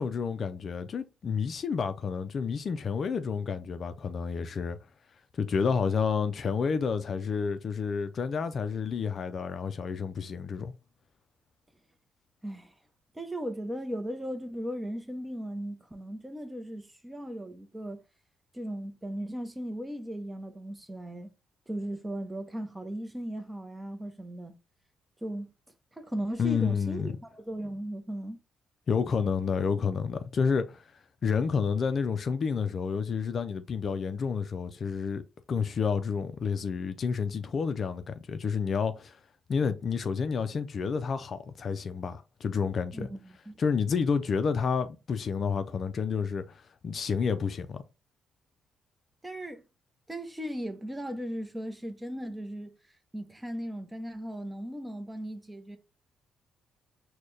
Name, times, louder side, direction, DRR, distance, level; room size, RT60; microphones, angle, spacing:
voice 1, 0.0-4.8 5.3-10.7 26.4-27.1 28.9-30.8 31.2-35.2 35.5-39.2 39.5-43.1 43.6-47.8, left 6 dB, 50° left, 0.4 m, -30 dB
voice 2, 12.4-12.7 13.1-18.0 18.5-21.3 21.7-24.6 25.2-25.5 26.0-28.4 42.9-43.2 43.5-43.6 49.2-49.6 50.1-52.7 53.1-55.8, right 1 dB, 10° right, 0.7 m, -37 dB
4.2 x 2.2 x 3.2 m
cardioid pair, 90°, 0 cm